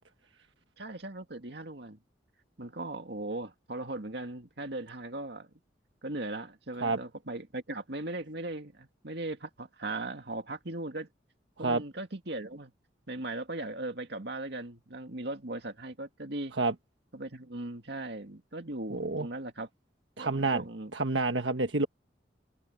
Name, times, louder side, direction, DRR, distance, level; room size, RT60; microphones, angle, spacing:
voice 1, 0.8-2.0 2.6-5.5 6.0-11.1 11.6-12.7 13.1-16.5 17.1-19.7 20.2-20.9, right 2 dB, 65° right, 2.3 m, -38 dB
voice 2, 18.9-19.3 20.2-20.6 20.9-21.9, right 3 dB, 80° right, 1.4 m, -28 dB
head